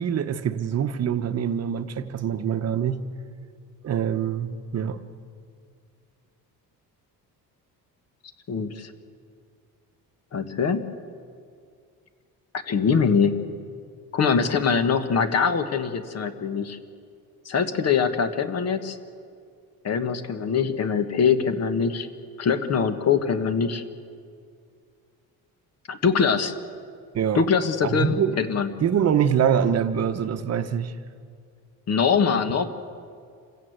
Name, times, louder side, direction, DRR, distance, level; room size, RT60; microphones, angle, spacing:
voice 1, 0.0-3.0 3.8-5.0 27.1-27.4 27.8-28.4 28.8-30.9, right 8 dB, 45° right, 1.0 m, -24 dB
voice 2, 8.5-8.9 10.3-10.9 12.6-13.4 14.1-16.8 17.4-19.0 19.8-22.1 22.4-23.8 25.9-26.5 27.3-28.7 31.9-32.7, left 6 dB, 45° left, 1.4 m, -23 dB
27.0 x 16.5 x 8.0 m
cardioid pair, 150°, 35 cm